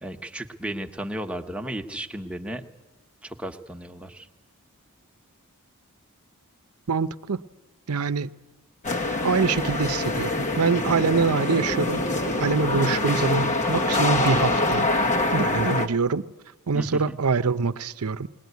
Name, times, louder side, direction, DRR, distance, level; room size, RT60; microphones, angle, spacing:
voice 1, 0.0-2.6 3.2-4.3 16.7-17.2, right 1 dB, 5° right, 1.2 m, -34 dB
voice 2, 6.9-7.4 7.9-8.3 9.2-14.9 15.3-16.3 16.7-18.3, right 5 dB, 80° right, 0.7 m, -25 dB
sound 1, 8.8-15.9, left 2 dB, 35° left, 1.1 m, -25 dB
20.5 x 20.5 x 9.4 m
head